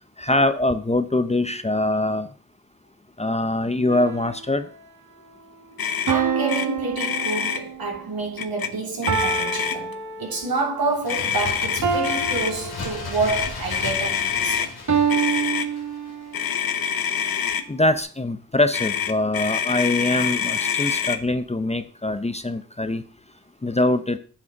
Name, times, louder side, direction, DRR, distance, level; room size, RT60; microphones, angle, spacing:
voice 1, 0.2-2.3 3.2-4.7 17.7-23.0 23.6-24.2, left 2 dB, 20° left, 0.7 m, -23 dB
sound 1, 3.9-4.7 6.1-7.9 9.1-10.7 11.8-13.5 14.9-16.5, right 6 dB, 55° right, 1.6 m, -27 dB
Motor vehicle (road), 5.8-6.2 6.5-6.7 6.9-7.6 8.4-8.7 9.0-9.9 11.1-12.5 13.3-14.7 15.1-15.7 16.3-17.6 18.7-21.2, left 7 dB, 70° left, 0.9 m, -26 dB
voice 2, 6.1-14.7, right 3 dB, 70° right, 3.2 m, -28 dB
Bird, 10.9-16.4 16.7-16.8, left 4 dB, 85° left, 2.4 m, -36 dB
8.8 x 7.4 x 4.0 m
cardioid pair, 55°, 37 cm